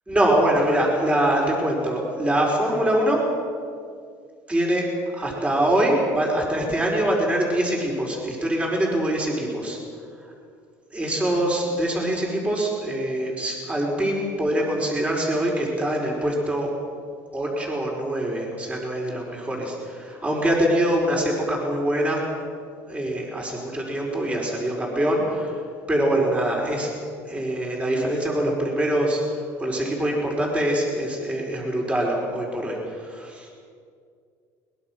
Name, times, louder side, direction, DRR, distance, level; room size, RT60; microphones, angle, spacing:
voice 1, 0.1-3.3 4.5-4.9 5.1-9.8 10.9-16.7 17.3-22.2 22.9-25.6 25.9-27.0 27.3-29.2 29.6-32.8 33.0-33.5, right 1 dB, 15° right, -1 dB, 5.1 m, -24 dB
22.5 x 21.5 x 6.3 m, 2.2 s
cardioid pair, 125°, 8 cm